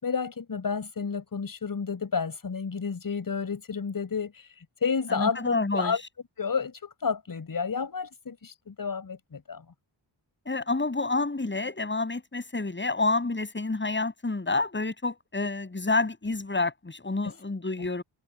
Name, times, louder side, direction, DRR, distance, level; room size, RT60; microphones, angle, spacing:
voice 1, 0.0-4.5 4.8-6.0 6.4-9.6, left 5 dB, 45° left, 7.3 m, -31 dB
voice 2, 5.1-6.0 10.4-18.0, left 3 dB, 25° left, 6.4 m, -28 dB
wide cardioid pair, 105°, 47 cm